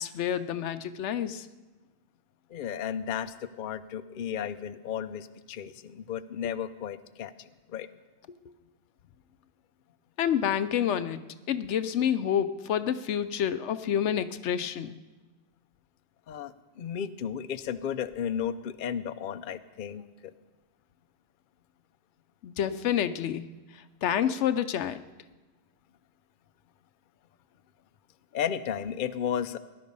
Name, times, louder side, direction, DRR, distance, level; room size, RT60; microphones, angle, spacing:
voice 1, 0.0-1.5 10.2-11.2 11.5-15.0 22.4-23.5 24.0-25.0, left 9 dB, 85° left, 13 dB, 1.0 m, -28 dB
voice 2, 2.5-7.9 16.3-20.3 28.3-29.6, left 8 dB, 55° left, 12 dB, 0.7 m, -34 dB
18.5 x 11.5 x 5.4 m, 1.2 s
omnidirectional pair, 1.2 m